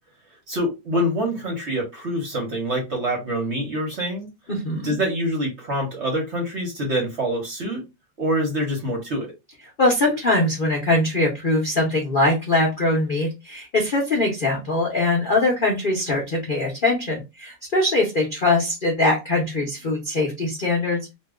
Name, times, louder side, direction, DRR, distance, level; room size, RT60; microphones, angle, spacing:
voice 1, 0.5-4.3 4.8-7.8 8.2-9.3, equal, 50° right, -1 dB, 0.9 m, -25 dB
voice 2, 4.5-4.9 9.8-21.1, left 2 dB, 50° left, -2 dB, 0.6 m, -22 dB
2.9 x 2.2 x 3.5 m, 0.24 s
omnidirectional pair, 2.1 m